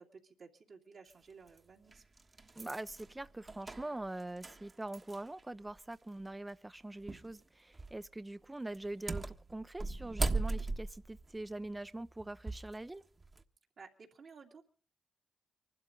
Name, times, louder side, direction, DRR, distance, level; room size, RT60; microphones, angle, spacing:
voice 1, 0.0-2.0 13.8-14.6, right 5 dB, 70° right, -2 dB, 2.5 m, -55 dB
sound 1, 1.1-1.2 1.9-5.4 5.7-5.8 7.1-7.3 7.7-8.1 8.7-12.7 13.2-13.4, right 3 dB, 40° right, 1.4 m, -38 dB
voice 2, 2.6-13.0, right 2 dB, 20° right, 13 dB, 0.7 m, -43 dB
25.0 x 12.5 x 3.9 m, 0.40 s
supercardioid pair, 40°, 0 cm